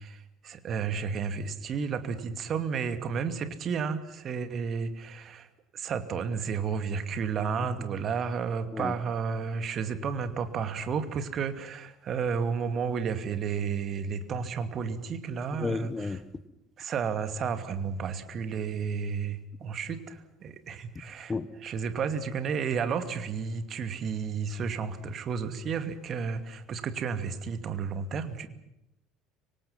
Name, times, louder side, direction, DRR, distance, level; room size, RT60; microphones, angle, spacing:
voice 1, 0.0-5.5 5.7-16.2 16.8-21.3 21.6-28.5, right 6 dB, 40° right, 9 dB, 2.5 m, -32 dB
voice 2, 15.6-16.2 21.3-21.5, left 4 dB, 20° left, 14 dB, 1.5 m, -31 dB
25.5 x 25.0 x 5.8 m, 0.86 s
figure-of-eight pair, 65°, 0 cm